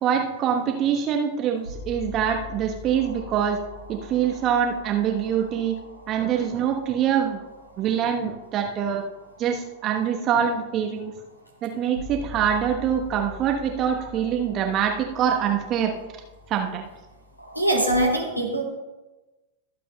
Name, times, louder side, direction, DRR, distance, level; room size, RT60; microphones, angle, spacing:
voice 1, 0.0-3.6 3.9-5.7 6.1-7.4 7.8-9.0 9.4-11.1 11.6-15.9 16.5-16.8, right 8 dB, 35° right, 3 dB, 1.0 m, -24 dB
sound 1, 0.6-18.0, left 2 dB, 85° left, 2.1 m, -44 dB
voice 2, 17.5-18.6, right 1 dB, 90° right, -1 dB, 2.2 m, -22 dB
22.5 x 8.3 x 2.2 m, 1.1 s
figure-of-eight pair, 90°, 0 cm